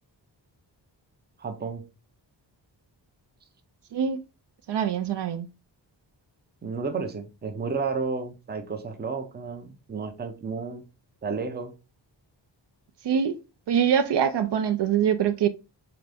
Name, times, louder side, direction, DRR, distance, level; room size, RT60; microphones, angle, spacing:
voice 1, 1.4-1.9 6.6-10.8 11.2-11.7, right 4 dB, 25° right, 0.5 m, -32 dB
voice 2, 4.7-5.5 13.0-13.3 13.7-15.5, right 8 dB, 65° right, 0.6 m, -24 dB
3.9 x 3.4 x 3.4 m
wide cardioid pair, 155°, 44 cm